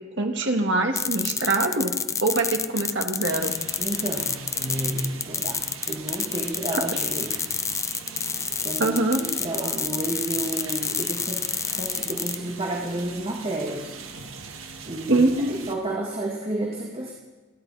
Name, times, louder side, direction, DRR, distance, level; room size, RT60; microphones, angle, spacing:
voice 1, 0.2-1.9 2.2-3.5 6.7-6.8 8.8-9.2 15.1-15.6, right 2 dB, 60° right, 3 dB, 2.1 m, -23 dB
sound 1, 1.0-12.4, left 6 dB, 15° left, 0.4 m, -28 dB
sound 2, 3.3-15.8, right 5 dB, 85° right, 1.8 m, -41 dB
voice 2, 3.8-5.6 5.9-7.3 8.6-11.4 11.7-13.9 14.8-17.1, right 1 dB, 30° right, -1 dB, 1.8 m, -31 dB
29.0 x 11.0 x 4.2 m, 1.2 s
head